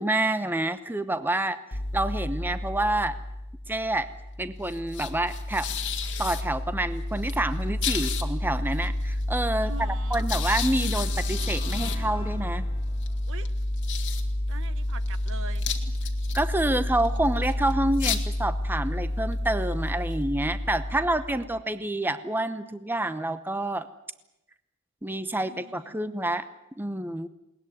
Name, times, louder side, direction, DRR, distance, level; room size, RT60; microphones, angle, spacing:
voice 1, 0.0-1.6 1.9-3.2 3.7-4.1 4.4-5.7 6.2-9.7 10.1-12.6 16.3-23.9 25.0-26.4 26.8-27.3, right 1 dB, 10° right, 11 dB, 0.8 m, -28 dB
sound 1, 1.7-21.6, left 2 dB, 60° left, 2.3 m, -29 dB
voice 2, 9.6-10.2 13.3-13.5 14.5-15.7 25.4-26.0, right 4 dB, 65° right, 13 dB, 1.1 m, -43 dB
sound 2, 10.0-10.1 10.8-13.6, left 1 dB, 25° left, 4.0 m, -45 dB
21.0 x 19.0 x 9.6 m, 0.90 s
head